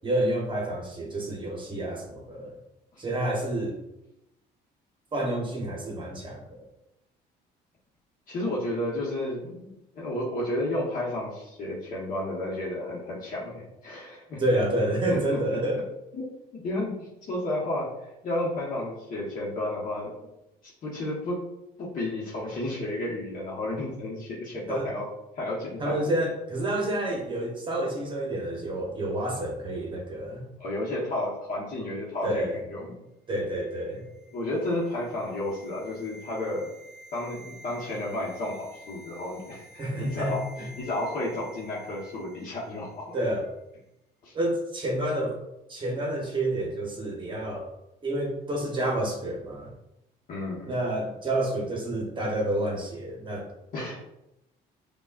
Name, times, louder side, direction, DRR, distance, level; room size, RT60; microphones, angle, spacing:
voice 1, 0.0-2.5 3.0-3.8 5.1-6.4 14.4-15.8 24.7-24.9 25.8-30.5 32.2-32.6 33.3-34.0 39.8-40.7 43.1-43.4 44.3-45.4 45.7-47.7 48.0-49.7 50.6-53.5, right 1 dB, 30° right, -1 dB, 0.9 m, -29 dB
voice 2, 8.3-14.4 15.1-15.2 16.1-17.9 18.2-20.1 20.8-21.4 21.8-25.0 25.3-26.0 30.6-32.9 34.3-36.7 37.1-43.1 44.2-44.3 50.3-50.7 53.7-54.0, left 1 dB, 55° left, -6 dB, 1.1 m, -32 dB
sound 1, 33.6-42.9 43.1-43.3, right 1 dB, 85° left, 0.8 m, -50 dB
5.3 x 2.3 x 2.4 m, 0.88 s
cardioid pair, 110°, 17 cm